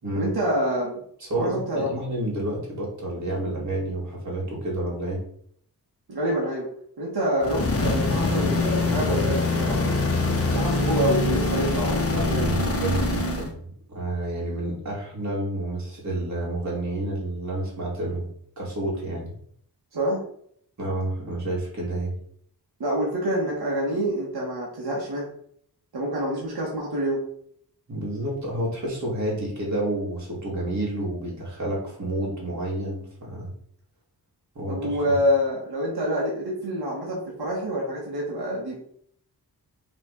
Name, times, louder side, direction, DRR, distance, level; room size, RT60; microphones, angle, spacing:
voice 1, 0.2-1.0 1.4-1.9 6.1-6.7 7.0-10.0 10.5-12.7 19.9-20.2 22.8-25.3 25.9-27.2 34.7-38.8, equal, 80° right, -4 dB, 2.2 m, -27 dB
voice 2, 1.2-5.2 7.6-7.7 12.1-18.3 18.6-19.4 20.8-22.1 27.9-33.5 34.5-35.1, right 1 dB, 45° right, -4 dB, 3.2 m, -29 dB
sound 1, 7.4-13.5, left 3 dB, 35° left, 1.1 m, -24 dB
5.8 x 4.3 x 5.6 m, 0.65 s
wide cardioid pair, 150°, 38 cm